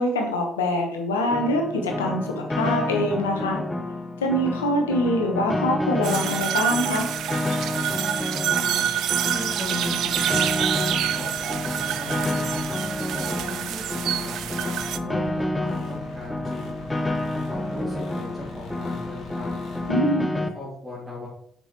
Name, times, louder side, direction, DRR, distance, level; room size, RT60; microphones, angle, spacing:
voice 1, 0.0-3.6 4.2-7.0 19.9-20.3, left 1 dB, 80° left, 2 dB, 1.1 m, -24 dB
Piano, 1.3-20.5, left 1 dB, 15° left, 0.8 m, -29 dB
sound 1, 6.0-15.0, right 11 dB, 60° right, 0.3 m, -27 dB
sound 2, 6.9-19.9, left 1 dB, 55° left, 2.3 m, -45 dB
voice 2, 8.4-8.9 9.3-10.8 11.1-12.6 13.2-14.7 15.0-16.8 17.5-19.5 20.3-21.3, left 1 dB, 10° right, -7 dB, 2.4 m, -38 dB
6.7 x 6.0 x 3.1 m, 0.72 s
figure-of-eight pair, 45°, 0 cm